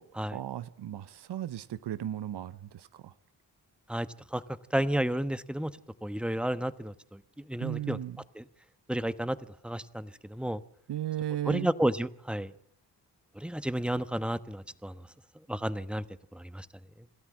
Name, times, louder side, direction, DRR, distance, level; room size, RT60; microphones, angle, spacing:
voice 1, 0.3-3.1 7.6-8.2 10.9-11.7, right 12 dB, 75° right, 0.8 m, -36 dB
voice 2, 4.7-5.7 6.0-6.9 7.5-8.0 8.3-8.4 8.9-9.4 9.6-10.6 11.5-12.5 13.4-14.9 15.5-16.0 16.3-16.7, right 1 dB, ahead, 1.1 m, -31 dB
27.0 x 13.0 x 7.4 m
cardioid pair, 50°, 41 cm